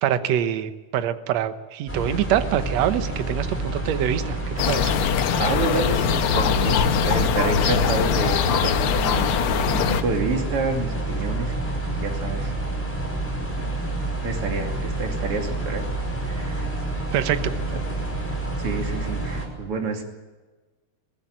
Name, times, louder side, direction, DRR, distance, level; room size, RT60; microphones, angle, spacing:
voice 1, 0.0-4.4 4.7-4.9 17.1-17.5, right 10 dB, 65° right, 10 dB, 2.1 m, -24 dB
sound 1, 1.9-19.5, right 2 dB, 5° left, 5.2 m, -28 dB
sound 2, 4.6-10.0, left 8 dB, 70° left, 1.3 m, -22 dB
voice 2, 5.4-9.3 9.7-11.7 12.0-12.5 14.2-15.9 16.2-16.7 17.7-17.8 18.6-20.0, right 3 dB, 45° right, 3 dB, 3.4 m, -28 dB
22.5 x 17.0 x 8.8 m, 1.2 s
omnidirectional pair, 3.6 m